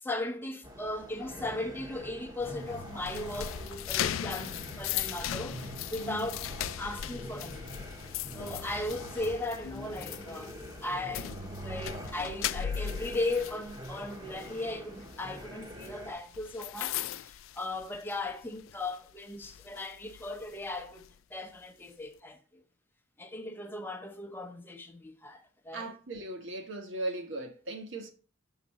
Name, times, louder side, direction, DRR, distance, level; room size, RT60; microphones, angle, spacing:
voice 1, 0.0-6.5 6.8-7.6 8.3-10.5 10.8-21.0 21.3-22.4 23.2-25.9, left 2 dB, 10° left, 0.8 m, -37 dB
sound 1, 0.6-16.1, equal, 20° right, 1.0 m, -45 dB
sound 2, 2.4-18.3 18.7-19.0 19.4-21.1, left 10 dB, 75° left, 0.4 m, -38 dB
voice 2, 6.0-6.4 25.7-28.1, right 2 dB, 60° right, 1.4 m, -38 dB
6.7 x 4.0 x 6.3 m
head